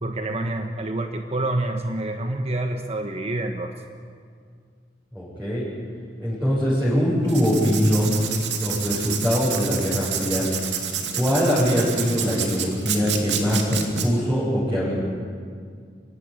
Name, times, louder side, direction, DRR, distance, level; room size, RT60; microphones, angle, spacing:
voice 1, 0.0-3.7, right 2 dB, 35° right, 5 dB, 1.4 m, -27 dB
voice 2, 5.1-5.6 6.2-8.2 8.6-10.5 11.1-14.9, equal, 5° right, -10 dB, 7.8 m, -22 dB
Writing, 7.2-14.1, right 7 dB, 85° right, 2.6 m, -29 dB
25.0 x 16.5 x 9.9 m, 2.1 s
head